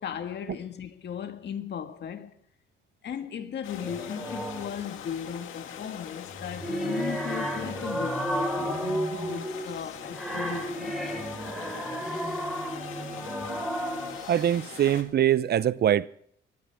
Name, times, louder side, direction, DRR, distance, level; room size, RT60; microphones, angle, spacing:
voice 1, 0.0-2.3 3.0-11.2, left 8 dB, 60° left, 1.8 m, -37 dB
sound 1, 3.6-15.0, left 9 dB, 85° left, 2.0 m, -42 dB
sound 2, 3.8-4.8 6.3-14.4, equal, ahead, 4.6 m, -32 dB
voice 2, 14.3-16.1, right 10 dB, 55° right, 0.6 m, -23 dB
20.0 x 16.0 x 3.6 m
cardioid pair, 90°, 20 cm